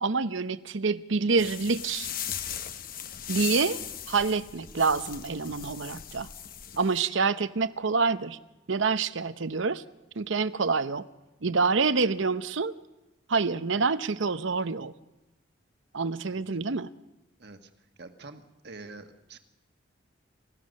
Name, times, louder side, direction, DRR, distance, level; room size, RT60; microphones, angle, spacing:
voice 1, 0.0-2.1 3.3-3.8 4.1-6.3 6.8-8.4 8.7-9.8 10.2-11.0 11.4-12.7 13.3-14.9 15.9-16.9, right 4 dB, 70° right, 14 dB, 0.8 m, -27 dB
sound 1, 1.4-7.0, left 9 dB, 45° left, 1.0 m, -38 dB
voice 2, 17.4-17.7 18.0-19.4, right 3 dB, 55° right, 7 dB, 1.5 m, -47 dB
28.0 x 15.5 x 6.5 m, 1.0 s
head